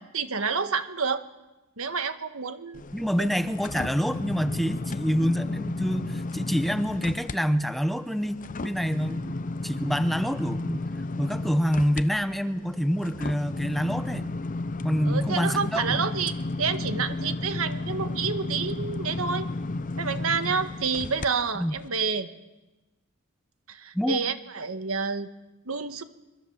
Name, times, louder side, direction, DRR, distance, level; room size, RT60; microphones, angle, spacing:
voice 1, 0.1-1.2 1.8-2.8 3.2-3.3 15.0-19.5 20.0-22.3 23.7-25.3 25.6-26.0, right 5 dB, 80° right, 10 dB, 1.5 m, -29 dB
sound 1, 2.7-7.4 7.8-21.3 21.8-21.9, left 2 dB, 40° left, 0.7 m, -33 dB
voice 2, 2.9-10.9 11.2-14.3 14.8-16.0 21.5-21.7 23.9-24.2, equal, ahead, 10 dB, 0.9 m, -27 dB
26.5 x 22.5 x 7.3 m, 1.1 s
head